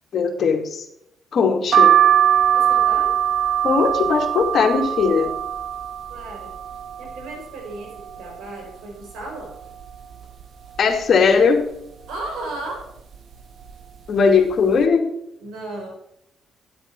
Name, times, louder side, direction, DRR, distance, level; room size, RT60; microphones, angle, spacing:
voice 1, 0.1-0.9 1.3-2.0 3.6-5.3 10.8-11.7 14.1-15.1, left 5 dB, 55° left, 2 dB, 2.3 m, -18 dB
sound 1, 1.7-7.4 7.8-8.6 9.0-9.1 9.3-10.4 10.9-11.3 12.0-12.4 13.1-13.4 13.6-13.8, right 10 dB, 55° right, 1.5 m, -21 dB
voice 2, 2.5-3.2 6.1-6.5 7.0-9.6 12.1-12.9 15.4-15.9, right 2 dB, 85° right, 1 dB, 4.6 m, -35 dB
11.0 x 7.9 x 4.5 m, 0.78 s
cardioid pair, 90°, 0 cm